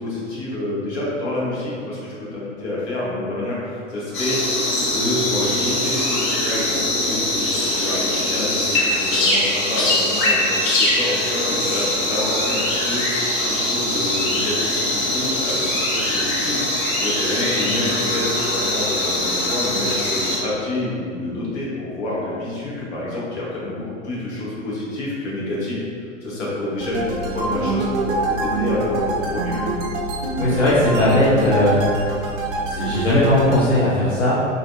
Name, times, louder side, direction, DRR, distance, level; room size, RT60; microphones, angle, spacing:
voice 1, 0.0-4.4 4.8-6.8 7.1-29.7, left 1 dB, 60° left, -7 dB, 1.0 m, -28 dB
sound 1, 4.1-20.4, left 1 dB, 40° left, 0.6 m, -22 dB
sound 2, 26.8-33.7, right 2 dB, 50° right, 0.4 m, -25 dB
voice 2, 30.4-31.9 32.7-34.4, left 1 dB, 80° left, -9 dB, 0.7 m, -18 dB
2.5 x 2.5 x 2.4 m, 2.3 s
figure-of-eight pair, 100°, 38 cm